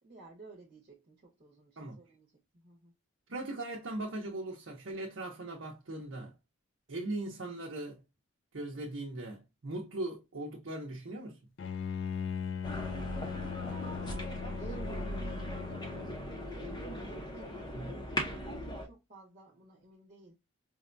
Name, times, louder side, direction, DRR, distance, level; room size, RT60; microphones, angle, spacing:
voice 1, 0.0-2.9 13.2-20.3, right 2 dB, 35° right, 0.9 m, -55 dB
voice 2, 3.3-6.3 6.9-8.0 8.5-11.4 17.7-17.9, right 2 dB, 60° right, 0.7 m, -39 dB
Bowed string instrument, 11.6-16.5, left 7 dB, 55° left, 0.3 m, -39 dB
sound 1, 12.6-18.9, equal, 20° left, 0.6 m, -39 dB
4.8 x 2.2 x 2.4 m
head